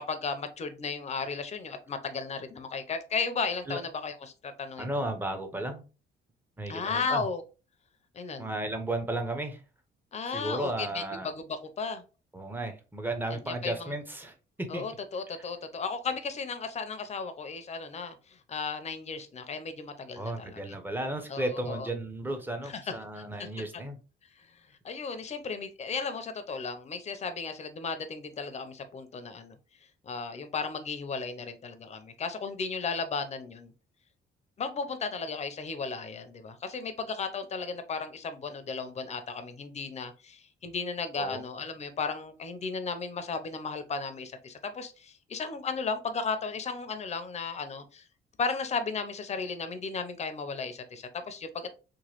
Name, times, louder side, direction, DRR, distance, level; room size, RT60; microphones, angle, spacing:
voice 1, 0.0-4.9 6.7-7.4 8.1-8.5 10.1-12.0 13.3-13.9 14.7-20.7 21.3-21.9 22.6-22.9 23.4-23.5 24.4-24.5 24.8-29.5 30.0-33.7 34.6-48.0 48.4-51.7, left 4 dB, 35° left, 9 dB, 0.5 m, -35 dB
voice 2, 4.8-5.8 6.6-7.2 8.4-9.6 10.3-11.3 12.3-14.9 20.2-24.0 41.2-41.4, right 1 dB, 10° right, 6 dB, 0.7 m, -34 dB
3.0 x 2.2 x 2.9 m, 0.32 s
cardioid pair, 90°, 20 cm